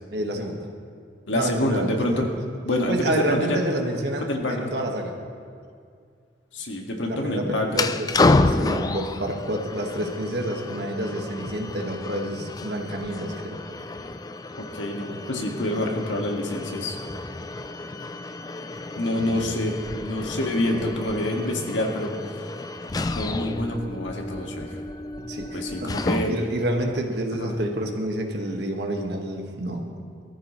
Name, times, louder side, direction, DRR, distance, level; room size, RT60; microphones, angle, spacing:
voice 1, 0.1-0.7 1.3-2.2 2.9-5.2 7.1-13.6 19.3-19.4 25.2-26.0 26.3-29.9, right 1 dB, 60° right, 2 dB, 1.6 m, -29 dB
voice 2, 1.3-2.3 2.6-3.6 4.3-4.7 6.5-7.8 14.6-17.0 19.0-22.5 23.2-24.8 25.5-26.3 27.3-27.5, left 1 dB, 90° left, 1 dB, 1.8 m, -27 dB
sound 1, 7.7-26.6, left 2 dB, 20° left, 0.3 m, -30 dB
22.0 x 14.0 x 3.2 m, 2.2 s
head